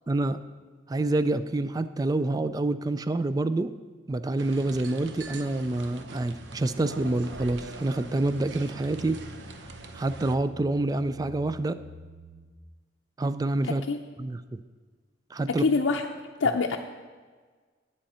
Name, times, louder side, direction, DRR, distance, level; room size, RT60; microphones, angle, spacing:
voice 1, 0.1-0.4 0.9-3.7 4.1-9.2 9.9-11.8 13.2-13.9 14.2-14.6 15.3-15.6, right 2 dB, 20° right, 12 dB, 0.3 m, -27 dB
sound 1, 4.4-10.4, right 3 dB, 65° right, 0.7 m, -44 dB
sound 2, 5.4-12.4, equal, 50° right, 3.5 m, -49 dB
voice 2, 13.7-14.0 15.5-16.0 16.4-16.8, left 4 dB, 85° left, 1 dB, 0.5 m, -25 dB
10.5 x 8.3 x 4.3 m, 1.4 s
head